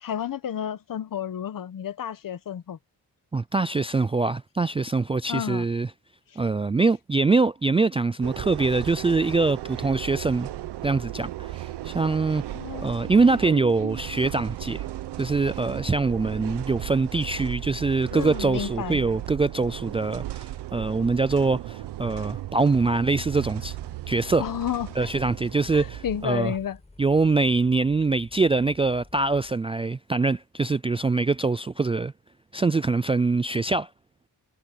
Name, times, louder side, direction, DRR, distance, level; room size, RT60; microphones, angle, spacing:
voice 1, 0.0-2.8 5.3-5.6 12.5-13.1 18.1-19.0 24.4-25.1 25.7-26.8, left 9 dB, 55° left, 1.2 m, -31 dB
voice 2, 3.3-5.9 6.4-10.5 10.8-12.4 12.8-14.8 15.2-23.8 24.1-24.4 25.0-26.5 27.0-32.1 32.5-33.9, right 3 dB, 15° right, 0.3 m, -24 dB
sound 1, 8.2-26.3, right 14 dB, 90° right, 1.1 m, -36 dB
sound 2, 22.8-29.5, left 2 dB, 15° left, 7.3 m, -51 dB
cardioid pair, 105°, 40 cm